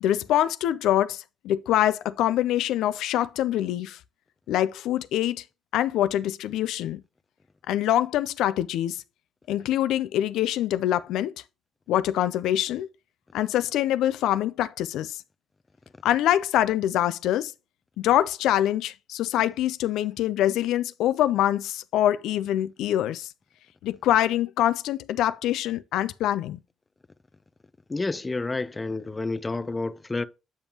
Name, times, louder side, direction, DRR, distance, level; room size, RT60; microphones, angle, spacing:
voice 1, 0.0-4.0 4.5-5.4 5.7-7.0 7.7-9.0 9.5-11.3 11.9-12.9 13.3-15.2 16.0-17.5 18.0-23.3 23.8-26.6, left 12 dB, 85° left, 0.4 m, -24 dB
voice 2, 27.9-30.2, left 3 dB, 20° left, 0.5 m, -29 dB
8.7 x 5.3 x 2.9 m
cardioid pair, 90°, 0 cm